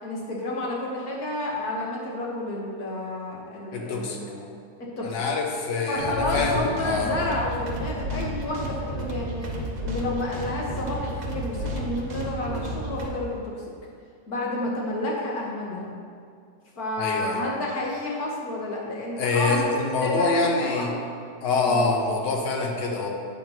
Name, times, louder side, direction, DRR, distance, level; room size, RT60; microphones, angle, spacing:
voice 1, 0.0-4.5 4.8-5.3 5.9-9.5 9.8-13.5 14.3-15.9 16.8-19.7 20.0-21.0 21.7-21.9, left 1 dB, 60° left, -3 dB, 1.7 m, -30 dB
voice 2, 3.7-4.2 5.0-7.1 17.0-17.4 19.2-20.9 21.4-23.1, left 3 dB, 85° left, 1 dB, 1.6 m, -25 dB
sound 1, 6.0-13.1, right 1 dB, 35° right, 0.8 m, -32 dB
8.8 x 3.6 x 5.9 m, 2.3 s
omnidirectional pair, 1.8 m